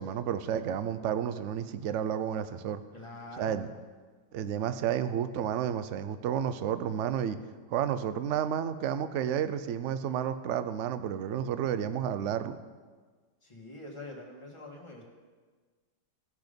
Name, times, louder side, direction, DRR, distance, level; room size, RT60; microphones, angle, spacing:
voice 1, 0.0-2.8 3.4-3.7 4.3-7.4 7.7-12.6, right 9 dB, 65° right, 12 dB, 0.7 m, -31 dB
voice 2, 2.9-3.6 13.4-15.0, left 2 dB, 20° left, -1 dB, 1.6 m, -44 dB
18.0 x 6.0 x 5.2 m, 1.5 s
omnidirectional pair, 1.8 m